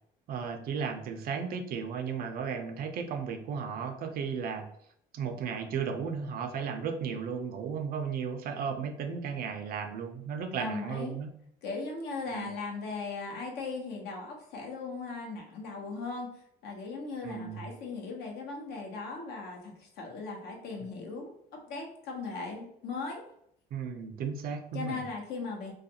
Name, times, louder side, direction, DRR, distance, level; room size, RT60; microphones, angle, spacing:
voice 1, 0.3-4.7 5.1-11.3 12.3-12.5 17.2-17.6 23.7-25.0, right 6 dB, 60° right, 6 dB, 0.4 m, -35 dB
voice 2, 10.6-11.1 11.6-16.3 16.6-21.3 21.7-23.2 24.7-25.7, left 4 dB, 75° left, 1 dB, 0.8 m, -38 dB
2.4 x 2.2 x 2.7 m, 0.70 s
cardioid pair, 110°, 17 cm